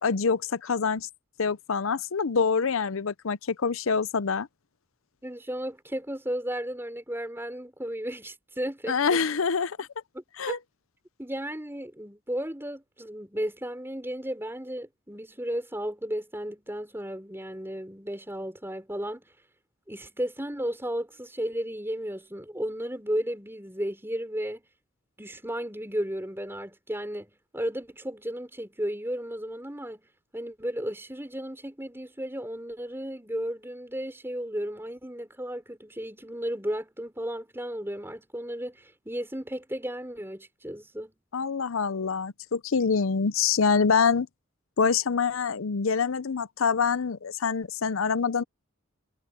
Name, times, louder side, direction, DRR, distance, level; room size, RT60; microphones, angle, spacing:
voice 1, 0.0-1.1 1.4-4.5 8.9-9.9 10.4-10.6 41.3-44.3 44.8-48.4, left 5 dB, 70° left, 0.6 m, -25 dB
voice 2, 5.2-9.2 10.1-10.6 11.2-19.2 19.9-24.7 25.2-30.1 30.3-41.1, equal, 10° right, 5.0 m, -34 dB
head